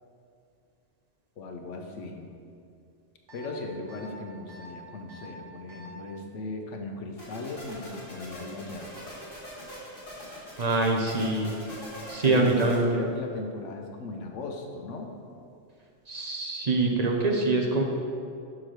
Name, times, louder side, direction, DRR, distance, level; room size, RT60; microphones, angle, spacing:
voice 1, 1.4-2.3 3.3-8.9 12.2-12.6 12.9-15.2, left 3 dB, 80° left, 3 dB, 1.1 m, -37 dB
sound 1, 3.3-3.5 3.9-4.1 4.5-4.7 5.1-5.3 5.7-5.9, right 1 dB, 75° right, 1.6 m, -48 dB
sound 2, 7.2-12.8, equal, 40° left, 2.2 m, -43 dB
voice 2, 10.6-11.5 12.1-13.0 16.1-17.8, right 2 dB, 40° right, 0 dB, 0.7 m, -24 dB
6.3 x 4.8 x 5.9 m, 2.4 s
omnidirectional pair, 1.3 m